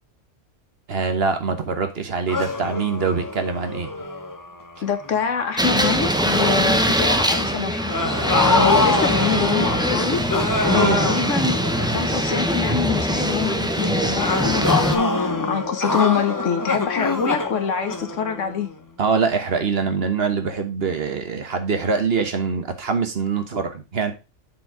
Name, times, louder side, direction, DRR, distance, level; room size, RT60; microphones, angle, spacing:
voice 1, 0.9-3.9 10.7-11.1 19.0-24.1, right 5 dB, 55° right, 1.4 m, -24 dB
sound 1, 2.3-5.4 5.8-6.1 7.9-12.5 14.2-18.7, left 3 dB, 15° left, 0.9 m, -25 dB
voice 2, 4.8-7.9 8.3-10.2 10.6-11.6 11.9-18.7, left 7 dB, 90° left, 1.5 m, -25 dB
sound 2, 5.6-15.0, equal, 5° right, 0.6 m, -22 dB
7.4 x 4.6 x 4.8 m
omnidirectional pair, 1.2 m